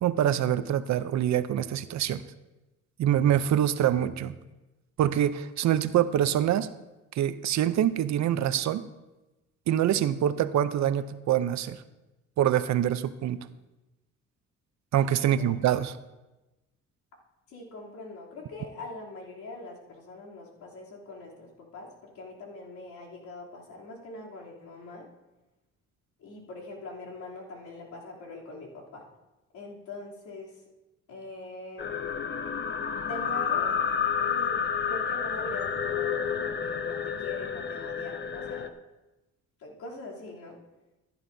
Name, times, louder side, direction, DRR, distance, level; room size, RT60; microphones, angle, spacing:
voice 1, 0.0-2.2 3.0-4.4 5.0-6.7 7.2-8.8 9.7-11.8 12.4-13.4 14.9-16.0, right 10 dB, 65° right, 13 dB, 0.6 m, -25 dB
voice 2, 15.2-15.5 17.5-25.1 26.2-29.0 29.5-30.6 31.1-32.0 33.0-33.7 34.2-38.7 39.6-40.6, left 2 dB, 80° left, -4 dB, 3.1 m, -43 dB
sound 1, 31.8-38.7, left 7 dB, 35° left, 0.8 m, -30 dB
15.5 x 11.0 x 2.7 m, 1.0 s
cardioid pair, 90°, 30 cm